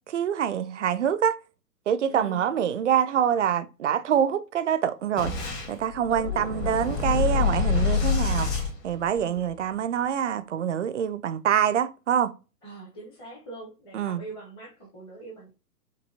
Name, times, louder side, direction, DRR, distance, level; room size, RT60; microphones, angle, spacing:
voice 1, 0.1-1.4 1.9-5.3 5.7-12.3 13.9-14.2, right 9 dB, 50° right, 0.5 m, -25 dB
voice 2, 2.1-2.5 6.1-6.7 12.6-15.6, right 2 dB, 10° left, 0.8 m, -43 dB
Boom, 5.2-9.6, left 6 dB, 30° left, 1.9 m, -27 dB
5.2 x 2.7 x 2.7 m
figure-of-eight pair, 120°, 49 cm